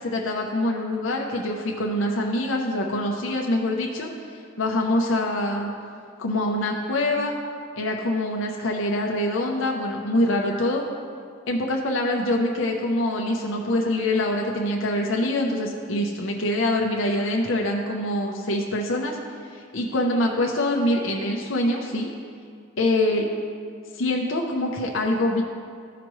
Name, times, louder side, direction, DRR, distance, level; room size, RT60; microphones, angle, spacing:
voice 1, 0.0-4.1 4.6-5.7 6.2-7.3 7.8-10.8 11.5-19.2 19.4-22.1 22.8-23.3 23.9-25.4, left 1 dB, 70° left, 0 dB, 0.7 m, -24 dB
14.5 x 5.0 x 3.1 m, 2.2 s
head